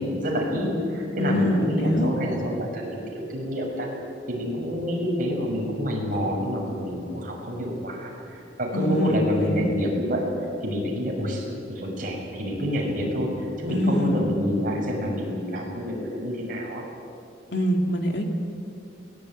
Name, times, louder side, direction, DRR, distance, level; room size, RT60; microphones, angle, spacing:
voice 1, 0.0-3.9 4.3-10.3 10.6-13.3 13.6-16.8, equal, 45° right, -1 dB, 6.4 m, -28 dB
voice 2, 1.2-2.1 8.7-9.7 13.7-14.2 17.5-18.2, equal, 65° left, 3 dB, 2.7 m, -24 dB
22.5 x 19.5 x 9.2 m, 2.5 s
head